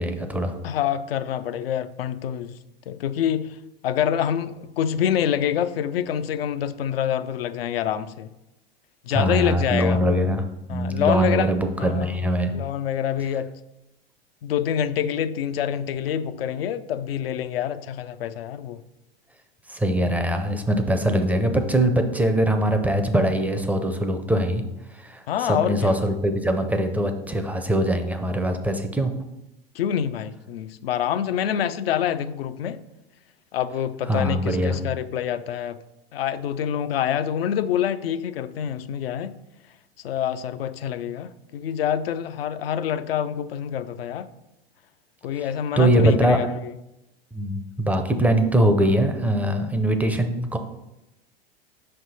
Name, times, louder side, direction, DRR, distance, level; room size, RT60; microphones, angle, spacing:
voice 1, 0.0-0.6 9.1-12.5 19.7-24.6 24.9-29.1 34.1-34.8 45.4-45.5 45.8-46.4 47.3-50.6, right 1 dB, 5° right, 0.4 m, -22 dB
voice 2, 0.6-2.6 2.9-3.6 3.8-8.3 9.0-10.0 10.7-11.5 11.8-12.1 12.5-13.5 14.4-18.8 25.3-26.0 29.7-32.8 33.5-35.8 36.1-39.4 40.0-44.3 45.2-46.7, left 9 dB, 75° left, 0.4 m, -26 dB
5.4 x 3.3 x 5.4 m
hypercardioid pair, 95°, 30 cm